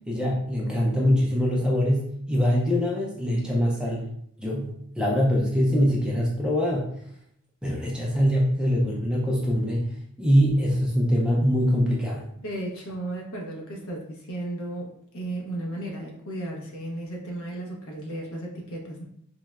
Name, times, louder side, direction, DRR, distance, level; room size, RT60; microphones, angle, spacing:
voice 1, 0.1-4.0 4.4-4.7 5.0-6.9 7.6-9.9 10.2-12.2, equal, 5° right, -3 dB, 0.3 m, -23 dB
voice 2, 12.4-19.0, right 1 dB, 65° left, -1 dB, 0.7 m, -34 dB
4.4 x 2.0 x 2.2 m, 0.70 s
head